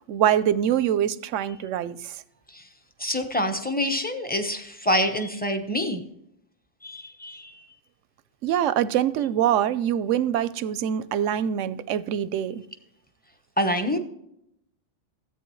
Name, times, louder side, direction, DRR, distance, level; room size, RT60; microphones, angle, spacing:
voice 1, 0.1-2.1 8.4-12.6, right 10 dB, 85° right, 0.9 m, -24 dB
voice 2, 3.0-6.0 6.8-7.6 13.6-14.0, equal, 10° left, 0.8 m, -26 dB
13.5 x 8.5 x 3.1 m
omnidirectional pair, 1.2 m